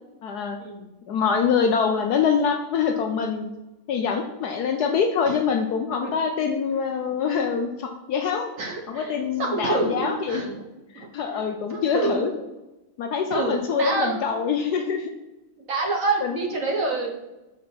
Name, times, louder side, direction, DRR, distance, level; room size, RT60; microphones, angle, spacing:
voice 1, 0.2-0.6 1.1-3.5 3.9-8.5 8.9-10.4 10.9-12.3 13.0-15.1 16.2-16.4, left 6 dB, 70° left, 5 dB, 1.0 m, -24 dB
voice 2, 8.6-10.6 10.9-12.3 13.3-14.4 15.7-17.2, right 3 dB, 50° right, 0 dB, 1.2 m, -28 dB
5.8 x 4.8 x 6.0 m, 1.0 s
omnidirectional pair, 2.1 m